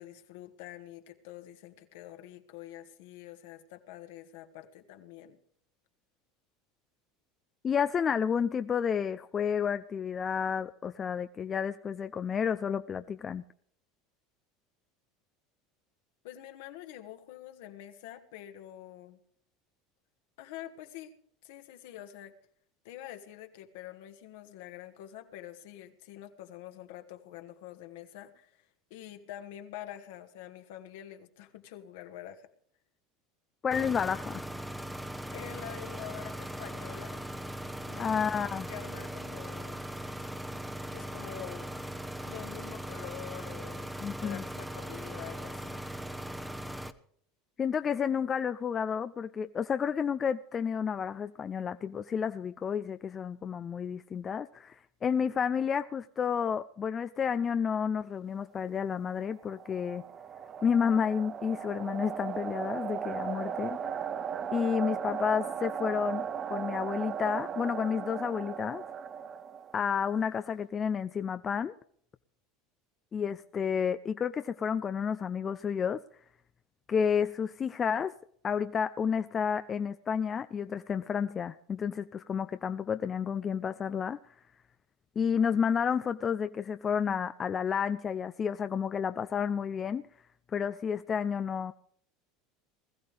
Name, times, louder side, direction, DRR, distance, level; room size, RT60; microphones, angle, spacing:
voice 1, 0.0-5.4 16.2-19.2 20.4-21.1 21.4-22.3 22.8-32.5 35.3-37.2 37.6-39.8 40.9-41.7 42.2-45.8, left 12 dB, 70° left, 1.5 m, -46 dB
voice 2, 7.6-13.4 33.6-34.5 38.0-38.7 44.0-44.4 47.6-54.8 55.0-60.0 60.6-63.8 64.5-68.8 69.7-71.8 73.1-76.0 76.9-78.1 78.4-84.2 85.2-90.0 90.5-91.7, left 7 dB, 35° left, 0.5 m, -31 dB
sound 1, 33.7-46.9, right 1 dB, 5° right, 0.9 m, -39 dB
sound 2, 59.1-70.0, right 7 dB, 40° right, 0.8 m, -37 dB
20.5 x 14.5 x 3.4 m
hypercardioid pair, 85°, 0 cm